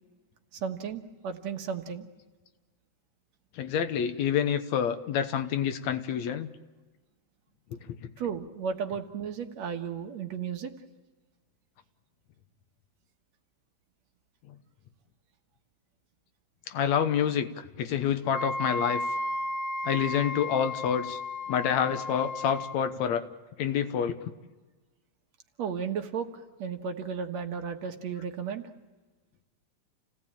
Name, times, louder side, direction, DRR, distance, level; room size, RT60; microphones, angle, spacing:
voice 1, 0.5-2.1 8.2-10.7 25.6-28.6, right 7 dB, 65° right, 5 dB, 2.5 m, -34 dB
voice 2, 3.6-6.5 7.7-8.0 16.7-19.0 19.8-21.2 21.5-23.2 23.6-24.2, left 8 dB, 70° left, 9 dB, 2.3 m, -28 dB
Wind instrument woodwind instrument, 18.3-22.8, left 2 dB, 55° left, 1.4 m, -34 dB
29.0 x 17.5 x 8.9 m, 1.3 s
omnidirectional pair, 3.4 m